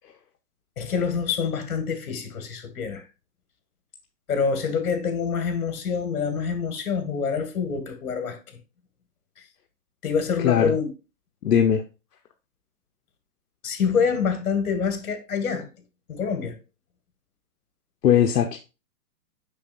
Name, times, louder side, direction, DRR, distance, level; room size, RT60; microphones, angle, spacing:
voice 1, 0.8-3.0 4.3-8.4 10.0-10.9 13.6-15.7 16.1-16.6, left 6 dB, 65° left, 1.9 m, -26 dB
voice 2, 11.4-11.8 18.0-18.6, left 9 dB, 80° left, 0.9 m, -19 dB
6.7 x 6.1 x 2.4 m
hypercardioid pair, 150°, 47 cm